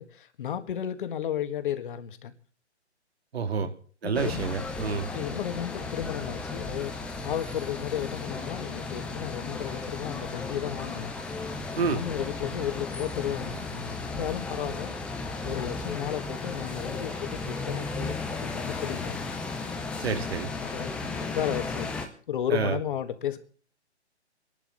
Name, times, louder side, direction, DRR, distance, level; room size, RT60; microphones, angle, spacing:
voice 1, 0.0-2.3 3.6-3.7 4.0-4.7 5.1-11.1 11.8-14.9 15.4-19.4 20.6-21.9 22.3-23.4, left 10 dB, 45° left, 1.7 m, -33 dB
voice 2, 3.3-3.7 4.0-5.1 11.8-12.0 20.0-20.5 22.5-22.8, right 5 dB, 65° right, 2.3 m, -28 dB
sound 1, 4.1-22.1, left 3 dB, 5° left, 0.6 m, -35 dB
27.5 x 11.5 x 4.0 m
hypercardioid pair, 145°, 34 cm